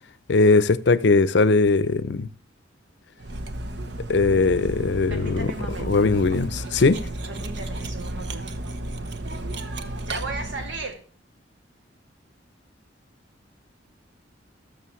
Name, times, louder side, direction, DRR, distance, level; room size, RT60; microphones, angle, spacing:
voice 1, 0.3-2.3 4.1-5.5 5.9-7.0, left 3 dB, 65° left, 0.5 m, -19 dB
Cutlery silverware, 3.2-10.9, right 1 dB, 65° right, 0.8 m, -33 dB
voice 2, 5.1-6.0 7.3-8.6 10.1-11.0, right 2 dB, 80° right, 2.2 m, -36 dB
12.5 x 6.7 x 3.1 m
head